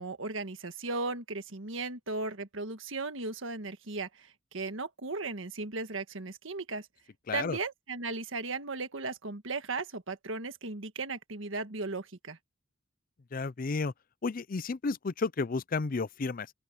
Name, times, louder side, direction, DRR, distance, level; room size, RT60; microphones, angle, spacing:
voice 1, 0.0-6.9 7.3-12.4, right 3 dB, 75° right, 1.6 m, -36 dB
voice 2, 7.3-7.6 13.3-13.9 14.2-16.5, left 4 dB, 45° left, 0.5 m, -32 dB
open air
head